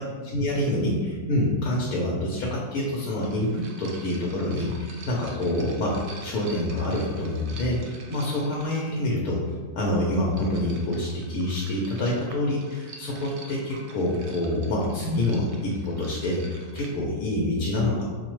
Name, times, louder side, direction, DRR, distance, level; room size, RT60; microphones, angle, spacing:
voice 1, 0.0-9.4 9.7-16.4 16.7-18.0, left 1 dB, 90° left, -3 dB, 1.2 m, -26 dB
sound 1, 2.3-2.4 3.2-9.0 10.0-16.9, right 3 dB, 65° right, 0.7 m, -47 dB
5.1 x 2.1 x 3.0 m, 1.4 s
omnidirectional pair, 1.6 m